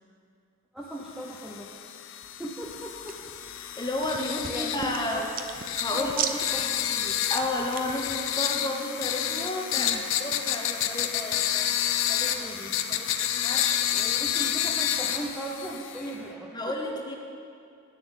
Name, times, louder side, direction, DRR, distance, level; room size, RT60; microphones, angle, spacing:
voice 1, 0.7-1.7 2.4-3.2 4.5-5.3 5.9-7.2 9.7-10.1 12.3-12.8 13.9-17.0, right 1 dB, ahead, -4 dB, 0.6 m, -38 dB
sound 1, 1.2-16.1, left 10 dB, 60° left, 0.5 m, -30 dB
sound 2, 2.6-8.3, right 7 dB, 40° right, 0.5 m, -38 dB
voice 2, 3.6-5.3 5.8-6.2 7.3-9.9 10.2-11.7 12.1-12.4 12.9-13.8 16.5-17.1, left 1 dB, 20° left, 1 dB, 1.0 m, -32 dB
9.2 x 7.1 x 7.3 m, 2.4 s
head